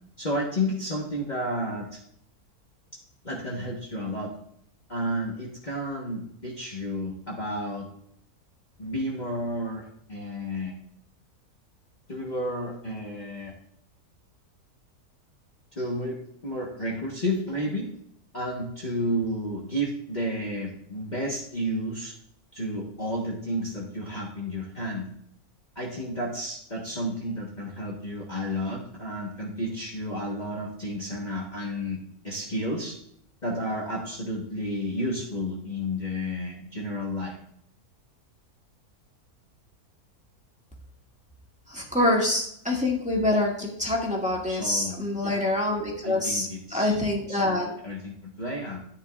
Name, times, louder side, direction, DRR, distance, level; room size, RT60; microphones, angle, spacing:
voice 1, 0.2-2.0 3.2-4.3 4.9-7.9 8.8-10.8 12.1-13.5 15.7-17.9 18.3-22.1 22.5-25.1 25.7-32.0 32.2-32.9 33.4-37.4 44.5-45.4 46.0-46.9 47.3-47.4 47.8-48.8, equal, 30° left, -4 dB, 1.6 m, -31 dB
voice 2, 41.7-47.7, left 2 dB, 5° right, -3 dB, 2.1 m, -26 dB
12.5 x 10.0 x 2.6 m, 0.69 s
omnidirectional pair, 1.6 m